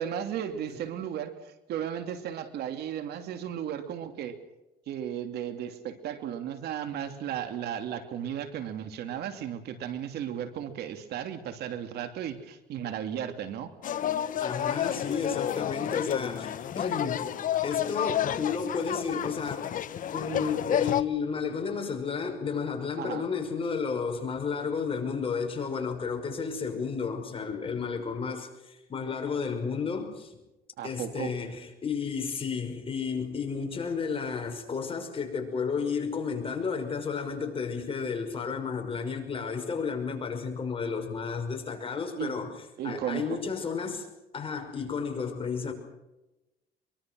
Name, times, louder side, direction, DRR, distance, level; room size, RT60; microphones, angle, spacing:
voice 1, 0.0-4.4 4.9-13.7 23.0-23.2 30.8-31.3 42.2-42.3 42.8-43.4, right 9 dB, 70° right, 2.8 m, -35 dB
sound 1, 13.8-21.0, left 10 dB, 50° left, 1.2 m, -30 dB
voice 2, 14.4-17.3 17.6-19.7 20.1-30.4 30.8-42.5 42.8-44.1 44.3-45.7, left 5 dB, 35° left, 5.9 m, -32 dB
24.0 x 23.5 x 6.3 m
cardioid pair, 110°, 17 cm